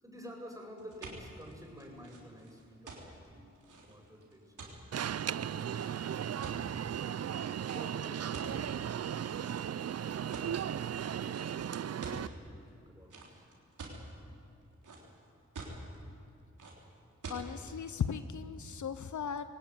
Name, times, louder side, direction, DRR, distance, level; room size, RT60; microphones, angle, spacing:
voice 1, 0.0-4.8 11.2-13.6, equal, 10° right, 0 dB, 7.2 m, -52 dB
sound 1, 0.8-6.9 7.6-7.8 8.3-9.0 9.4-9.9 10.3-10.7 11.3-11.5 11.7-12.3 13.1-14.0 14.5-15.2 15.5-16.0 16.6-16.7 17.2-17.4, right 3 dB, 85° right, 3.6 m, -46 dB
Alarm, 4.9-12.3, right 9 dB, 55° right, 0.5 m, -36 dB
voice 2, 17.3-19.4, left 7 dB, 75° left, 11 dB, 0.8 m, -37 dB
21.5 x 17.5 x 9.6 m, 2.4 s
cardioid pair, 40°, 30 cm